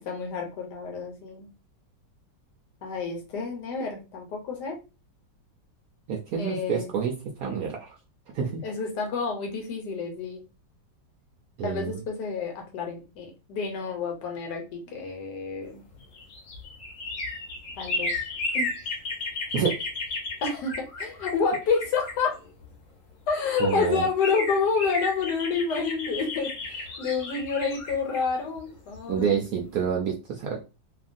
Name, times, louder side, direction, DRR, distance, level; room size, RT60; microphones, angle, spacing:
voice 1, 0.1-1.5 2.8-4.8 6.4-6.9 8.6-10.4 11.6-15.8 17.8-18.1 18.5-18.7 20.4-22.4 23.3-29.4, left 5 dB, 70° left, 2 dB, 1.3 m, -29 dB
voice 2, 6.1-7.1 7.4-8.0 8.3-8.6 11.6-12.0 19.5-19.7 23.6-24.0 29.1-30.6, right 7 dB, 70° right, 0 dB, 0.8 m, -28 dB
sound 1, 15.9-22.7 23.3-23.4 23.6-29.4 29.7-29.8, left 2 dB, 55° left, 1.0 m, -34 dB
2.8 x 2.5 x 2.5 m, 0.30 s
omnidirectional pair, 1.9 m